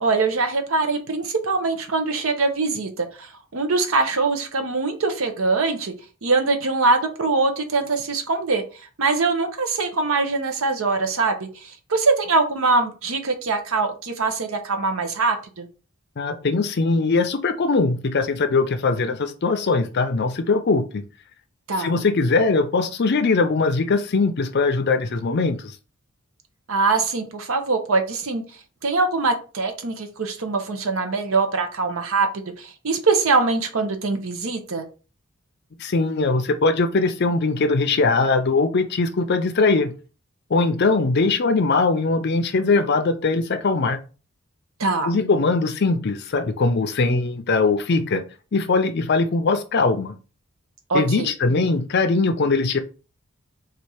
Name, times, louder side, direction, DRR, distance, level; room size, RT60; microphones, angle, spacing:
voice 1, 0.0-5.9 6.2-15.7 21.7-22.0 26.7-28.4 28.8-32.3 32.6-34.8 44.8-45.1 50.9-51.3, right 3 dB, 70° right, 0.8 m, -23 dB
voice 2, 16.2-21.0 21.8-25.8 35.8-39.9 40.5-44.0 45.0-48.2 48.5-50.1 50.9-52.8, left 3 dB, 50° left, 0.5 m, -21 dB
4.1 x 2.5 x 4.8 m
head